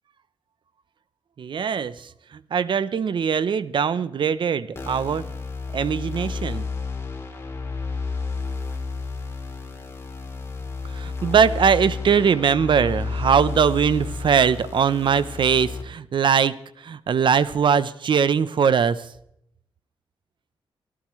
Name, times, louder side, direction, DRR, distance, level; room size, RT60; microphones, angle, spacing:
voice 1, 1.4-2.1 2.5-5.3 5.7-6.7 10.9-16.5 16.8-19.1, right 7 dB, 60° right, 15 dB, 0.8 m, -21 dB
sound 1, 4.8-15.8, left 4 dB, 30° left, 3.4 m, -31 dB
25.5 x 12.5 x 3.2 m, 0.75 s
cardioid pair, 105°, 9 cm